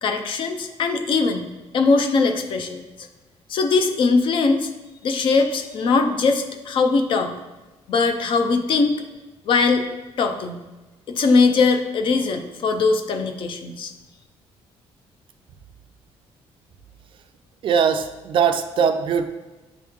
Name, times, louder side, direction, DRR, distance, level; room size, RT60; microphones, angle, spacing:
voice 1, 0.0-1.5 1.7-2.8 3.5-4.7 5.0-7.3 7.9-9.0 9.5-9.8 10.2-10.6 11.1-13.9, left 4 dB, 50° left, 5 dB, 0.5 m, -20 dB
voice 2, 17.6-19.3, right 7 dB, 50° right, 7 dB, 0.4 m, -20 dB
8.6 x 3.1 x 3.5 m, 1.1 s
cardioid pair, 155°, 11 cm